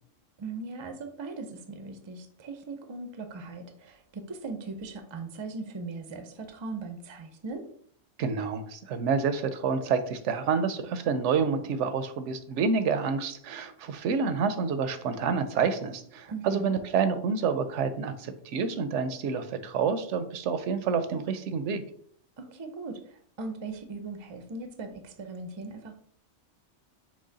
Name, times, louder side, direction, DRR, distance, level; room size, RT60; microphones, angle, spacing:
voice 1, 0.4-7.6 16.3-16.7 22.4-25.9, right 3 dB, 40° right, 7 dB, 0.4 m, -39 dB
voice 2, 8.2-21.8, right 5 dB, 85° right, 10 dB, 0.9 m, -28 dB
6.0 x 2.1 x 3.9 m, 0.63 s
omnidirectional pair, 1.2 m